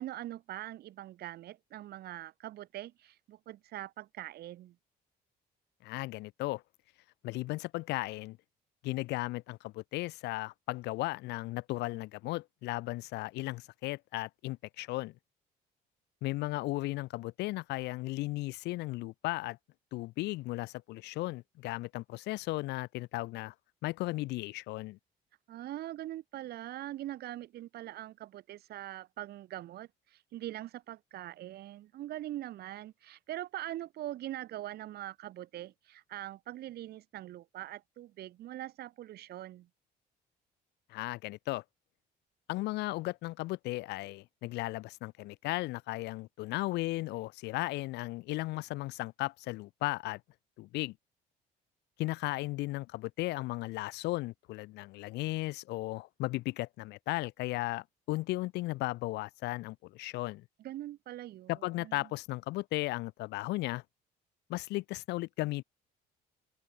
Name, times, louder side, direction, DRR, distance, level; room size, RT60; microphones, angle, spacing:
voice 1, 0.0-4.8 25.5-39.7 60.6-62.1, right 14 dB, 70° right, 4.2 m, -42 dB
voice 2, 5.8-6.6 7.2-8.4 8.8-15.1 16.2-19.6 19.9-23.5 23.8-25.0 40.9-41.6 42.5-50.2 50.6-50.9 52.0-60.4 61.5-63.8 64.5-65.6, left 19 dB, 85° left, 1.2 m, -36 dB
open air
cardioid pair, 110°, 17 cm